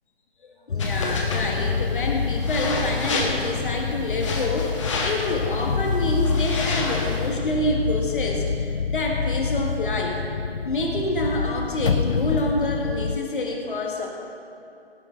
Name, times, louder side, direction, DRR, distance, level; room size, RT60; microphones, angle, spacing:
voice 1, 0.4-10.2 10.6-14.1, left 1 dB, 55° left, 1 dB, 1.7 m, -27 dB
sound 1, 0.7-13.2, left 5 dB, 90° left, 0.6 m, -27 dB
sound 2, 0.8-7.3, left 3 dB, 30° left, 1.4 m, -31 dB
16.5 x 10.5 x 3.8 m, 2.6 s
figure-of-eight pair, 145°, 31 cm